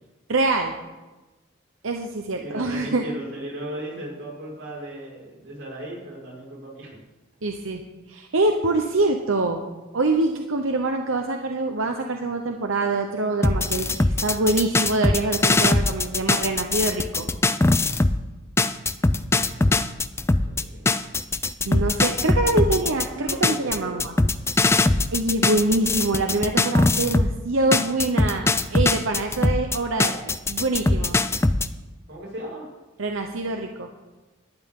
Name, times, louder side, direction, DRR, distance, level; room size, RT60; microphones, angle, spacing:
voice 1, 0.3-0.7 1.8-3.0 7.4-7.8 8.1-9.6 9.9-17.2 21.6-24.1 25.1-31.2 33.0-33.9, right 2 dB, 85° right, 4 dB, 1.0 m, -25 dB
voice 2, 2.4-6.9 19.3-19.9 20.3-20.9 22.6-24.0 32.1-32.7, right 1 dB, 65° right, -4 dB, 5.6 m, -37 dB
sound 1, 13.4-18.2 18.6-27.3 27.7-31.7, left 2 dB, 15° left, 0.4 m, -21 dB
18.0 x 12.0 x 3.8 m, 1.1 s
head